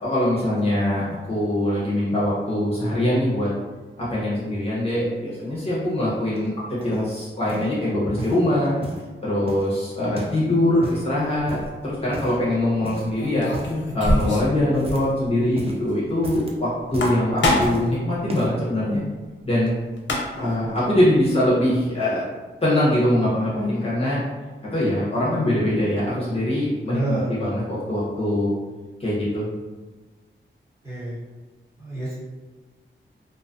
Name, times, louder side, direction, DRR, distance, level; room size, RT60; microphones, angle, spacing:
voice 1, 0.0-3.5 4.0-8.8 9.2-11.6 11.8-13.5 13.9-19.0 19.4-19.7 20.4-22.2 22.6-24.2 24.7-28.5 29.0-29.5, left 1 dB, 30° left, -9 dB, 0.8 m, -22 dB
sound 1, 6.3-7.1 7.5-7.7 8.1-9.1 9.5-10.5 10.7-11.1 11.5-11.8 12.1-12.5 12.8-13.2 13.4-13.8 14.2-15.2 15.4-15.8 16.1-16.6 16.9-17.9 18.3-18.6 19.3-19.4, right 1 dB, 30° right, 0.4 m, -35 dB
sound 2, 11.4-11.7 13.2-14.6 14.9-15.0 15.3-15.4 16.8-17.9 19.7-19.8 20.0-20.6, left 1 dB, 65° left, 0.6 m, -23 dB
voice 2, 26.9-27.3 30.8-31.1 31.8-32.2, right 2 dB, 15° right, -10 dB, 1.2 m, -27 dB
2.5 x 2.3 x 2.5 m, 1.3 s
wide cardioid pair, 100°, 20 cm